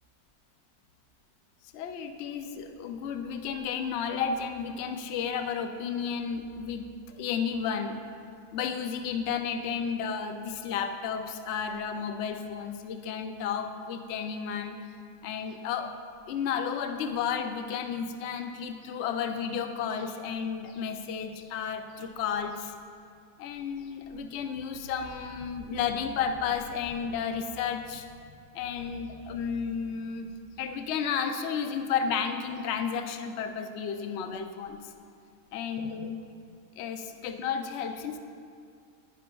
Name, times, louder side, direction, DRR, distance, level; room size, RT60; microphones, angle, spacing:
voice 1, 1.7-8.0 8.5-14.7 15.2-15.9 16.3-22.7 23.4-28.1 28.5-30.3 30.6-34.9 35.5-36.2 36.8-38.2, left 7 dB, 65° left, 6 dB, 0.7 m, -32 dB
11.5 x 10.0 x 2.3 m, 2.3 s
omnidirectional pair, 1.7 m